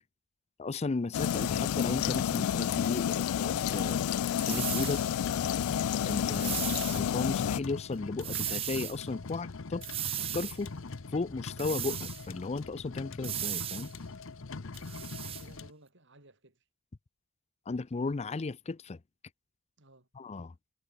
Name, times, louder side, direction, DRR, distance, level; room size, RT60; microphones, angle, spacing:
voice 1, 0.6-4.0 4.5-5.0 6.0-6.6 6.9-9.8 10.3-10.7 11.1-13.9 17.7-19.0 20.2-20.5, left 3 dB, 30° left, 0.5 m, -35 dB
sound 1, 1.1-7.6, left 10 dB, 90° left, 0.3 m, -30 dB
sound 2, 1.2-15.7, left 3 dB, 65° left, 0.8 m, -42 dB
sound 3, 4.4-5.1 6.3-7.0 8.2-9.0 9.8-10.6 11.6-12.3 13.2-13.9 14.7-15.4, right 12 dB, 25° right, 0.4 m, -36 dB
voice 2, 14.7-16.6 19.8-20.1, right 2 dB, 60° right, 6.1 m, -58 dB
head